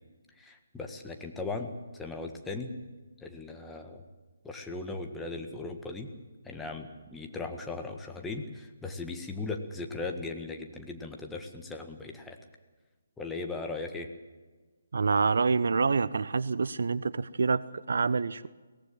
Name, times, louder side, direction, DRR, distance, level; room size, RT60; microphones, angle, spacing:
voice 1, 0.4-2.7 3.2-4.0 4.4-6.1 6.4-12.4 13.2-14.1, left 3 dB, 5° left, 3 dB, 1.7 m, -38 dB
voice 2, 14.9-18.5, right 4 dB, 60° right, 18 dB, 0.6 m, -27 dB
23.0 x 18.0 x 7.6 m, 1.3 s
figure-of-eight pair, 140°, 0 cm